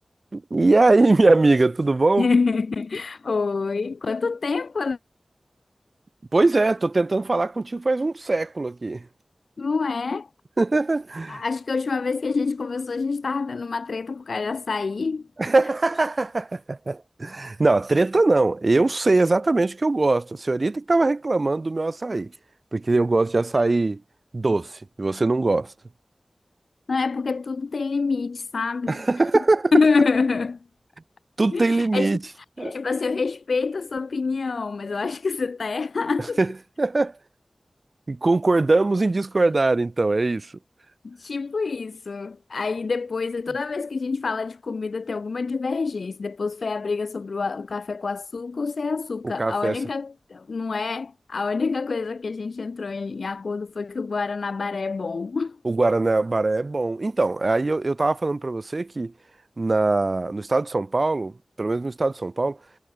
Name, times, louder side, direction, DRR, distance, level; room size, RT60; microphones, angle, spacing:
voice 1, 0.3-2.3 6.3-9.1 10.6-11.4 15.4-22.3 22.7-24.0 24.3-25.7 28.9-29.7 31.4-32.2 32.6-32.8 36.4-37.1 38.1-40.5 49.4-49.8 55.6-59.1 59.6-62.6, right 3 dB, 50° right, 4.6 m, -21 dB
voice 2, 2.2-5.0 9.6-10.3 11.3-15.2 26.9-29.0 29.7-30.6 31.5-32.2 32.6-36.4 41.0-55.6, left 4 dB, 90° left, 7.2 m, -26 dB
wide cardioid pair, 65°, 0 cm